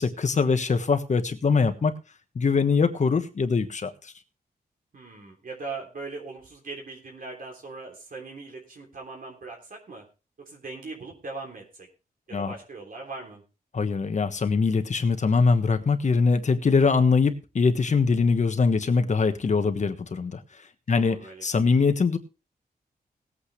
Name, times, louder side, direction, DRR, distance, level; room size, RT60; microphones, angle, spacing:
voice 1, 0.0-2.0 2.3-4.1 12.3-12.5 13.7-20.4 20.9-22.2, left 4 dB, 45° left, 1.4 m, -23 dB
voice 2, 4.9-10.0 10.4-11.9 12.3-13.4 20.9-21.4, right 3 dB, 60° right, 3.4 m, -40 dB
19.0 x 8.7 x 3.3 m
wide cardioid pair, 120°, 16 cm